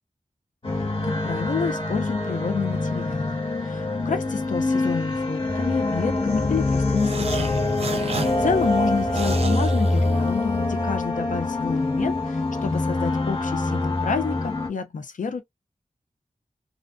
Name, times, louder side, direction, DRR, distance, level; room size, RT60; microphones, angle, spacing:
sound 1, 0.6-14.7, left 2 dB, 40° left, 1.2 m, -25 dB
voice 1, 0.8-7.7 7.9-15.4, left 5 dB, 80° left, 0.6 m, -29 dB
sound 2, 6.9-10.7, right 4 dB, 50° right, 0.5 m, -33 dB
2.5 x 2.2 x 2.5 m
cardioid pair, 50°, 13 cm